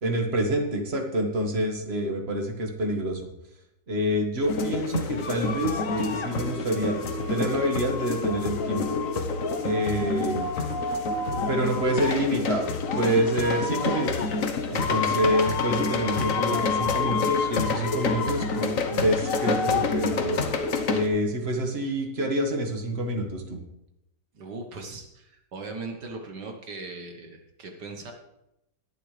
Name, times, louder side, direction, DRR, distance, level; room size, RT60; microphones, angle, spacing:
voice 1, 0.0-3.2 3.9-7.0 7.3-9.0 9.6-10.5 11.5-14.3 14.7-20.4 20.9-23.6, equal, 35° right, 3 dB, 1.8 m, -27 dB
sound 1, 4.4-21.1, left 4 dB, 50° left, 1.3 m, -27 dB
voice 2, 24.3-28.1, right 3 dB, 65° right, 4 dB, 1.9 m, -39 dB
21.5 x 7.7 x 3.3 m, 0.86 s
omnidirectional pair, 2.0 m